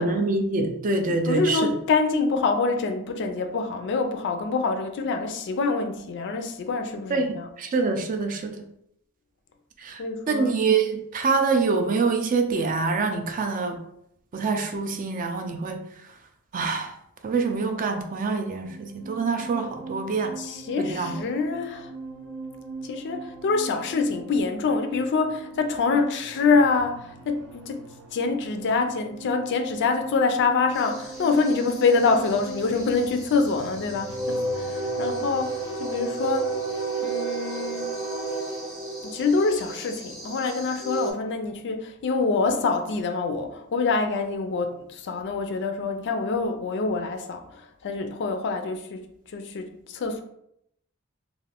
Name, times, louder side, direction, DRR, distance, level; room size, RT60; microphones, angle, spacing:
voice 1, 0.0-1.8 7.1-8.6 9.8-13.8 14.3-15.8 16.5-16.9 17.2-20.4 20.8-21.2, right 4 dB, 35° right, 0.3 m, -25 dB
voice 2, 1.3-7.5 10.0-10.6 20.4-21.9 22.8-36.5 37.0-37.9 39.0-49.1 49.3-50.2, left 4 dB, 50° left, 0.3 m, -25 dB
sound 1, 18.4-36.9, right 3 dB, 85° right, 0.8 m, -41 dB
sound 2, 30.7-41.1, right 3 dB, 15° right, 0.7 m, -32 dB
2.5 x 2.4 x 3.3 m
head